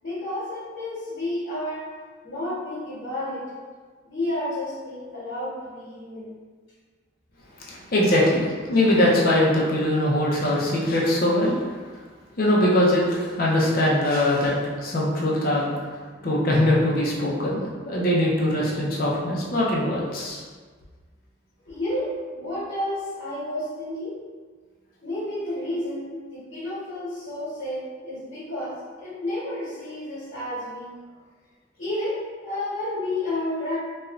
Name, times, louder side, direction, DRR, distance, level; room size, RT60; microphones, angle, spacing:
voice 1, 0.0-1.9 2.2-3.6 4.0-6.4 21.6-24.2 25.0-31.0 31.8-33.8, left 1 dB, 80° left, -11 dB, 1.1 m, -31 dB
voice 2, 7.7-11.6 12.4-15.8 16.2-20.4, left 1 dB, 45° left, -4 dB, 0.6 m, -22 dB
3.1 x 2.3 x 2.4 m, 1.5 s
head